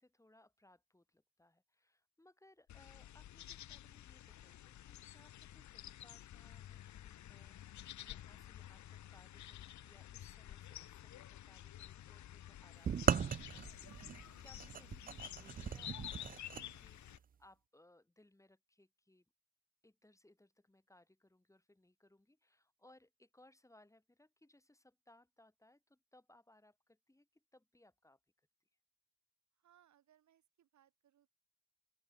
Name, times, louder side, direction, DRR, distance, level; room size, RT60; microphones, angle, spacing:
voice 1, 0.0-19.3 19.8-28.5, left 1 dB, 10° left, 6.2 m, -67 dB
sound 1, 2.7-17.2, left 12 dB, 70° left, 2.1 m, -51 dB
sound 2, 12.8-16.7, right 7 dB, 30° right, 0.5 m, -37 dB
voice 2, 29.5-31.3, right 10 dB, 70° right, 7.0 m, -71 dB
open air
cardioid pair, 90°, 30 cm